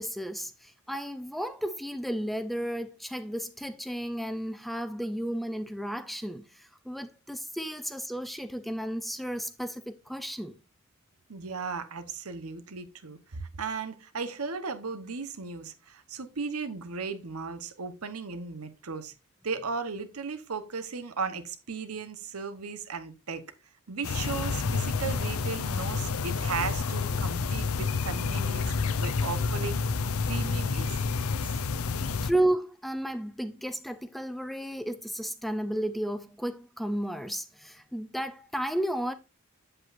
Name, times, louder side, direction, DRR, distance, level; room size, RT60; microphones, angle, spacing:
voice 1, 0.0-10.6 32.2-39.1, right 1 dB, ahead, 0.5 m, -33 dB
voice 2, 11.3-19.1 19.4-23.5 23.9-29.9 30.2-31.0 31.4-31.6, right 5 dB, 90° right, 1.0 m, -36 dB
sound 1, 24.0-32.3, left 4 dB, 80° left, 0.6 m, -29 dB
7.9 x 7.8 x 2.5 m
head